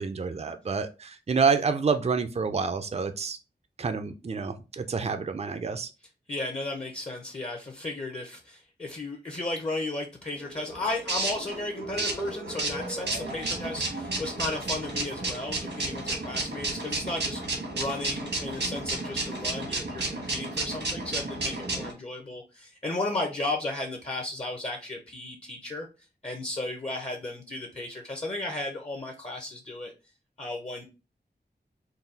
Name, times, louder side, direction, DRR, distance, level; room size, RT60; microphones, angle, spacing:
voice 1, 0.0-3.4 3.8-5.9, right 5 dB, 40° right, 8 dB, 0.4 m, -28 dB
voice 2, 6.3-25.9 26.2-29.9 30.4-30.8, left 2 dB, 35° left, 1 dB, 0.7 m, -34 dB
sound 1, 10.3-21.9, right 2 dB, 85° right, 1.3 m, -32 dB
3.9 x 2.3 x 3.9 m, 0.30 s
wide cardioid pair, 75°, 17 cm